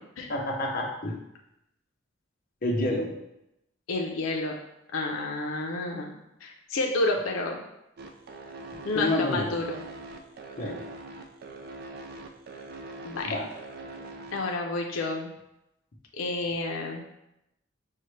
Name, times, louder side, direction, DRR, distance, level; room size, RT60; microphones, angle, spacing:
voice 1, 0.3-1.1 2.6-3.1 8.9-9.5 10.6-10.8 13.2-13.5, left 1 dB, 45° left, -1 dB, 0.7 m, -28 dB
voice 2, 3.9-4.6 4.9-7.6 8.9-9.8 13.0-13.3 14.3-15.3 16.2-17.0, left 2 dB, 85° left, 1 dB, 0.5 m, -30 dB
sound 1, 8.0-14.6, right 2 dB, 50° right, 0.4 m, -42 dB
5.4 x 2.1 x 3.1 m, 0.86 s
head